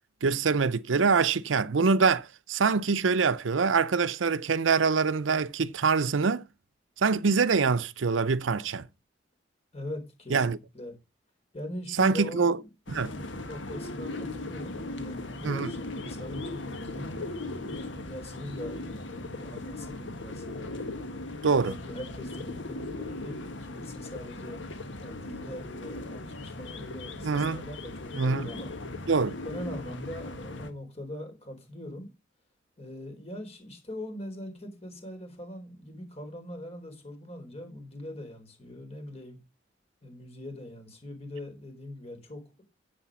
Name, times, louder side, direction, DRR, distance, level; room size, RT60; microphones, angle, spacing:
voice 1, 0.2-6.5 7.0-8.9 10.3-10.6 12.0-12.6 12.9-13.1 15.4-15.7 21.4-21.7 27.2-27.6 28.1-28.5 29.1-29.3, right 5 dB, 90° right, 0.6 m, -24 dB
voice 2, 9.7-11.0 11.5-12.7 13.3-17.2 17.5-21.0 21.6-24.6 25.0-28.7 29.4-32.1 32.8-39.4 40.0-42.6, left 1 dB, 35° left, 4.2 m, -42 dB
sound 1, 12.9-30.7, left 2 dB, 75° left, 1.7 m, -38 dB
10.0 x 7.8 x 6.1 m
head